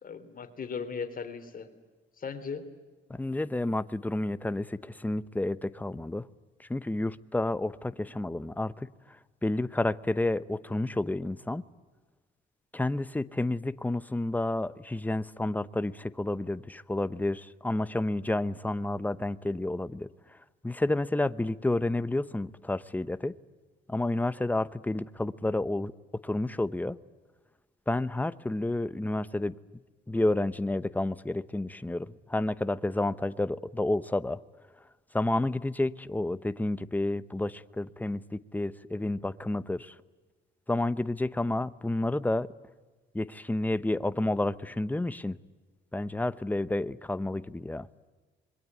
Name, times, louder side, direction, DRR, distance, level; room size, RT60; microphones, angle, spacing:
voice 1, 0.0-1.7 2.2-2.6, left 5 dB, 45° left, 7 dB, 3.7 m, -37 dB
voice 2, 3.1-6.3 6.6-8.9 9.4-11.6 12.7-20.4 20.6-23.3 23.9-25.9 26.2-27.0 27.9-29.6 30.1-34.4 35.1-39.9 40.7-42.5 43.1-45.4 45.9-47.9, left 2 dB, 10° left, 14 dB, 0.9 m, -30 dB
26.5 x 22.0 x 9.7 m, 1.3 s
cardioid pair, 90°, 20 cm